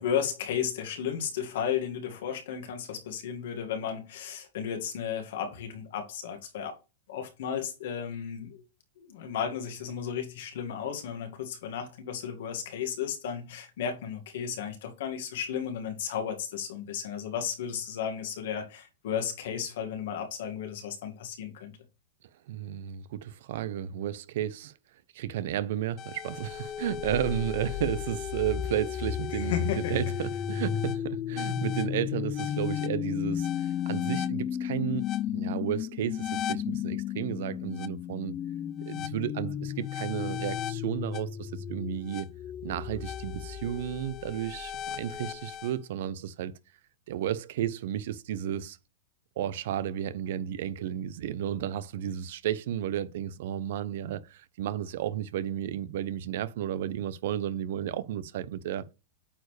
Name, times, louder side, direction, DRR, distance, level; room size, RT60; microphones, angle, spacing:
voice 1, 0.0-6.8 7.1-8.6 9.0-21.8 29.3-29.9, left 8 dB, 70° left, 2.0 m, -34 dB
voice 2, 22.5-24.7 25.1-35.0 35.3-38.4 38.9-42.3 42.6-46.5 47.1-48.8 49.4-58.9, right 11 dB, 70° right, 0.7 m, -33 dB
sound 1, 26.0-45.7, left 10 dB, 30° left, 0.4 m, -34 dB
8.7 x 4.6 x 3.3 m
hypercardioid pair, 125°, 0 cm